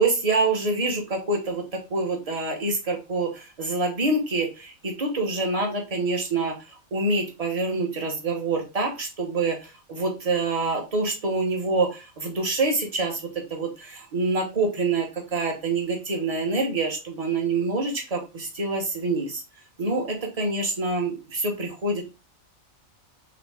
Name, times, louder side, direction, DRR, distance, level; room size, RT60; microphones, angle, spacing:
voice 1, 0.0-6.6 6.9-13.2 13.5-19.4 19.8-22.0, right 3 dB, 30° right, 2 dB, 1.1 m, -26 dB
4.0 x 3.2 x 3.5 m, 0.28 s
omnidirectional pair, 1.5 m